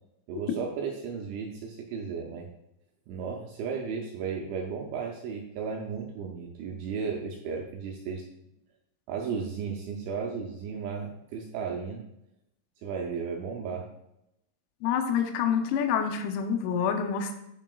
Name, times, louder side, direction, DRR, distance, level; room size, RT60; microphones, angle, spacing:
voice 1, 0.3-2.5 3.1-8.2 9.1-12.0 12.8-13.9, right 6 dB, 80° right, 0 dB, 2.7 m, -34 dB
voice 2, 14.8-17.4, left 7 dB, 85° left, 6 dB, 3.4 m, -27 dB
9.2 x 5.8 x 2.3 m, 0.84 s
omnidirectional pair, 6.0 m